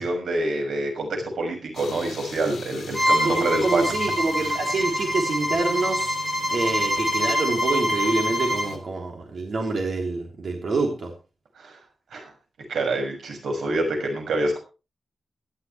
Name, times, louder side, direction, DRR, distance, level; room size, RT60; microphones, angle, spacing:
voice 1, 0.0-3.8 4.4-4.5 11.6-11.8 12.1-12.3 12.7-14.6, right 2 dB, 90° right, 3 dB, 6.4 m, -26 dB
sound 1, 1.7-8.8, left 6 dB, 55° left, 4.5 m, -41 dB
Bowed string instrument, 2.9-8.7, equal, 15° right, 3.3 m, -25 dB
voice 2, 3.2-6.2 6.5-11.1, right 3 dB, 50° right, 2 dB, 3.5 m, -26 dB
18.0 x 13.0 x 3.3 m, 0.32 s
wide cardioid pair, 160°, 0 cm